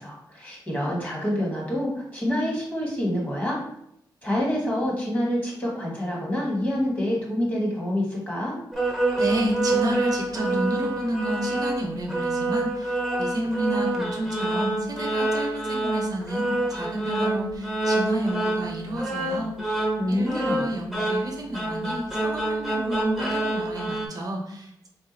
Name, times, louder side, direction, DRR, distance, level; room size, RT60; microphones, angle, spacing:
voice 1, 0.0-3.6 4.2-8.5 20.0-20.6, left 1 dB, 20° left, -3 dB, 1.4 m, -27 dB
sound 1, 8.7-24.1, right 2 dB, ahead, 0.8 m, -27 dB
voice 2, 9.2-24.9, right 1 dB, 55° right, 1 dB, 0.7 m, -30 dB
3.7 x 2.4 x 3.9 m, 0.74 s
wide cardioid pair, 120°, 8 cm